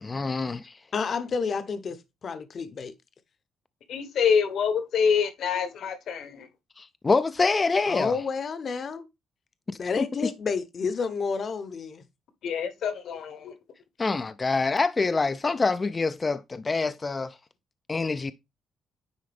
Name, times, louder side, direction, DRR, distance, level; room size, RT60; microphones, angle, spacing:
voice 1, 0.0-0.8 6.8-8.2 10.0-10.1 14.0-17.4 17.9-18.3, left 4 dB, 30° left, 0.3 m, -26 dB
voice 2, 0.9-2.9 7.9-9.0 9.8-12.0, left 5 dB, 50° left, 0.8 m, -30 dB
voice 3, 3.9-6.5 12.4-13.5, left 6 dB, 70° left, 1.1 m, -26 dB
9.6 x 3.9 x 3.4 m
cardioid pair, 100°, 0 cm